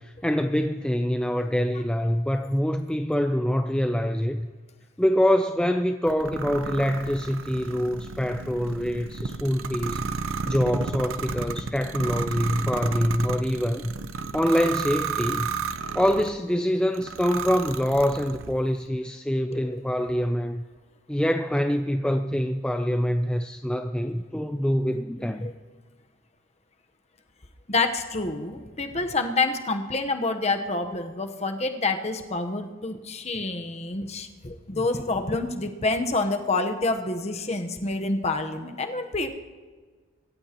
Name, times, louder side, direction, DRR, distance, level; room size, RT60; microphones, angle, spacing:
voice 1, 0.0-4.5 5.0-10.0 10.4-13.9 14.3-15.5 15.9-20.6 21.1-25.5, equal, 5° left, 6 dB, 0.4 m, -25 dB
sound 1, 6.1-16.4 16.9-18.6, right 5 dB, 80° right, 0.7 m, -33 dB
voice 2, 27.7-39.3, left 3 dB, 30° left, 6 dB, 1.0 m, -27 dB
25.0 x 14.0 x 3.0 m, 1.5 s
head